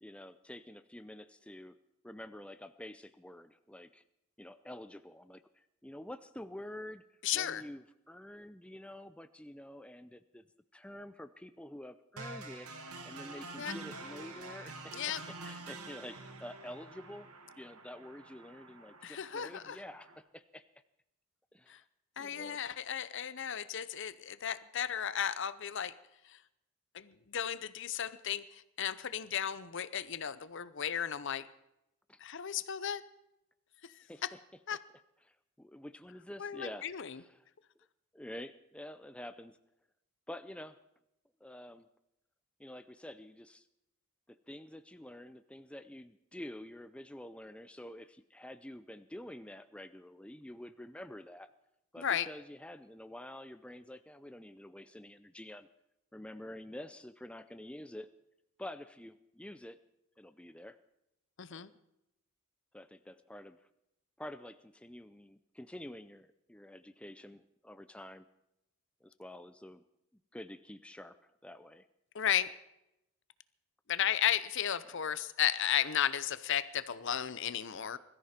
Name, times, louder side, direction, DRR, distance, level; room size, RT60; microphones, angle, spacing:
voice 1, 0.0-1.8 2.0-4.0 4.4-7.0 7.3-10.4 10.7-17.3 17.6-20.7 21.5-21.8 22.2-22.6 32.1-32.2 34.1-34.4 35.2-37.5 38.1-39.6 40.3-40.8 41.4-41.9 42.6-43.7 44.3-51.5 51.9-55.7 56.1-58.1 58.6-59.8 60.2-60.8 61.5-61.7 62.7-63.6 64.2-68.3 69.0-69.8 70.3-71.9 74.9-75.0, left 1 dB, 5° left, 11 dB, 0.5 m, -48 dB
voice 2, 7.2-7.6 13.6-13.7 14.9-15.2 19.0-19.8 21.7-21.8 22.2-25.9 26.2-26.4 26.9-31.5 32.2-33.0 33.9-34.3 34.7-34.8 36.4-37.2 52.0-52.3 61.4-61.7 72.1-72.5 73.9-78.0, left 9 dB, 55° left, 15 dB, 0.7 m, -34 dB
sound 1, 12.2-20.2, right 3 dB, 85° right, 2.0 m, -47 dB
21.5 x 14.0 x 4.4 m, 0.86 s
head